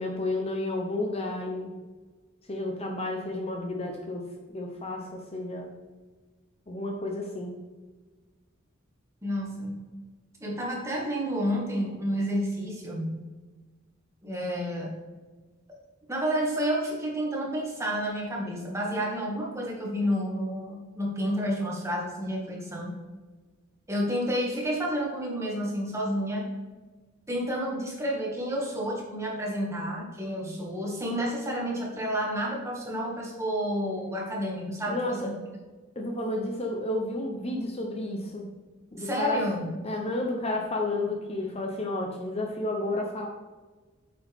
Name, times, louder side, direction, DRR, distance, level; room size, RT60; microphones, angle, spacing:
voice 1, 0.0-1.7 2.5-5.7 6.7-7.6 34.9-35.3 36.0-38.5 38.9-39.4 39.8-43.3, left 2 dB, 30° left, 2 dB, 0.8 m, -31 dB
voice 2, 9.2-9.8 10.4-13.2 14.2-15.0 16.1-22.9 23.9-26.5 27.3-35.3 39.0-39.7, equal, 15° right, -3 dB, 2.0 m, -30 dB
8.2 x 7.7 x 3.6 m, 1.3 s
head